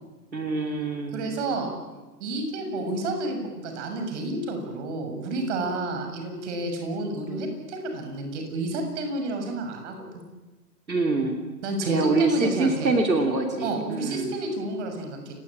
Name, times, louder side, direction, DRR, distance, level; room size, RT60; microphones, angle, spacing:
voice 1, 0.3-1.4 10.9-11.4 11.9-14.4, right 3 dB, 90° right, 4 dB, 3.2 m, -25 dB
voice 2, 1.1-1.7 2.2-10.1 11.6-12.9 13.6-15.3, right 2 dB, 45° right, 5 dB, 7.1 m, -30 dB
29.0 x 18.0 x 8.8 m, 1.2 s
figure-of-eight pair, 125°, 50 cm